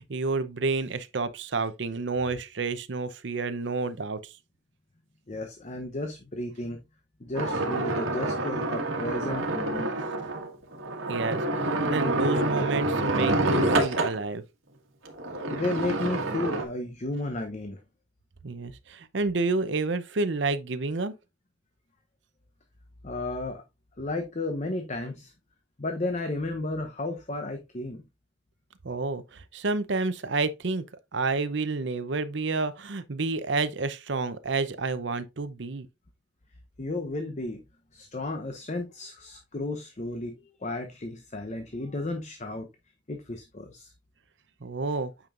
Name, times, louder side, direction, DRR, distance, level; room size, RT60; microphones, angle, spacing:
voice 1, 0.0-4.4 11.1-14.4 18.4-21.1 28.8-30.8 31.1-35.9 44.6-45.1, right 3 dB, 60° right, 0.7 m, -29 dB
voice 2, 5.3-6.8 7.2-9.9 15.5-17.8 23.0-23.6 24.0-25.3 25.8-28.0 36.8-37.6 37.9-42.7 43.1-43.9, left 2 dB, 35° left, 0.8 m, -33 dB
sound 1, 7.3-14.2 15.0-16.6, right 2 dB, 90° right, 1.7 m, -27 dB
8.8 x 5.3 x 2.5 m
head